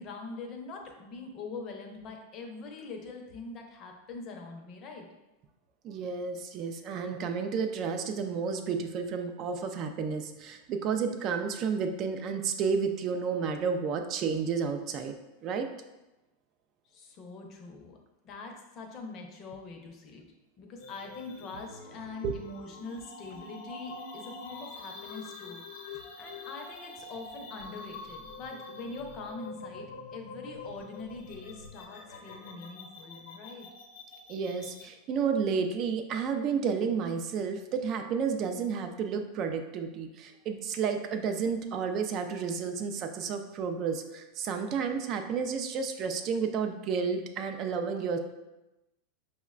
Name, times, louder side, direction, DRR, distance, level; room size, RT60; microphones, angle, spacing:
voice 1, 0.0-5.1 16.9-18.0 18.2-20.2 20.6-33.7, left 3 dB, 40° left, 2 dB, 0.6 m, -43 dB
voice 2, 5.8-15.1 15.4-15.7 22.2-22.3 34.3-48.2, right 6 dB, 40° right, 6 dB, 0.3 m, -31 dB
sound 1, 20.8-34.9, left 3 dB, 80° left, 0.7 m, -46 dB
5.6 x 2.1 x 2.4 m, 0.99 s
supercardioid pair, 140°, 0 cm